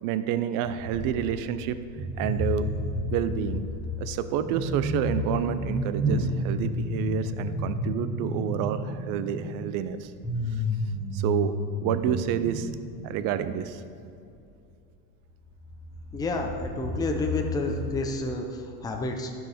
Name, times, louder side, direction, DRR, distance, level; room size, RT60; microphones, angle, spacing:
voice 1, 0.0-1.8 2.2-2.7 3.0-3.7 4.0-10.1 11.1-11.5 11.8-12.7 13.0-13.8, right 10 dB, 45° right, 12 dB, 0.6 m, -29 dB
sound 1, 0.6-1.6 1.9-14.0 15.2-15.3 15.5-18.2, left 1 dB, 10° right, 2.0 m, -31 dB
voice 2, 16.1-19.3, left 2 dB, 10° left, 2 dB, 0.7 m, -30 dB
11.5 x 6.4 x 5.0 m, 2.6 s
supercardioid pair, 130°, 47 cm